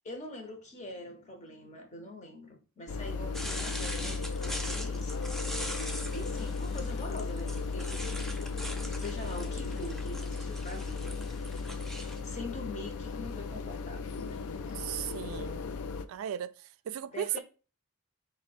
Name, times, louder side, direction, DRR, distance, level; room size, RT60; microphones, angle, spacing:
voice 1, 0.0-5.1 6.1-8.0 8.9-11.1 12.2-14.4 17.1-17.4, left 1 dB, 35° left, 0.8 m, -43 dB
sound 1, 2.9-16.1, left 4 dB, 85° left, 0.4 m, -36 dB
sound 2, 3.3-12.2, equal, ahead, 0.4 m, -42 dB
voice 2, 14.7-15.6 16.1-16.5 16.9-17.4, right 10 dB, 70° right, 0.3 m, -35 dB
4.2 x 2.2 x 4.2 m
head